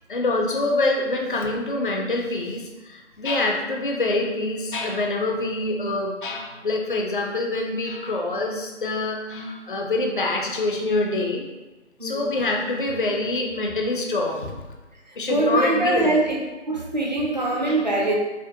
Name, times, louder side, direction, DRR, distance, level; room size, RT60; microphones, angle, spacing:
voice 1, 0.1-11.4 12.0-14.6 15.2-16.1 17.7-17.9, left 2 dB, 45° left, 1 dB, 0.4 m, -25 dB
voice 2, 12.0-12.3 15.1-16.4 16.7-18.2, right 2 dB, 35° right, -1 dB, 0.5 m, -23 dB
4.9 x 2.1 x 2.7 m, 1.2 s
figure-of-eight pair, 155°, 37 cm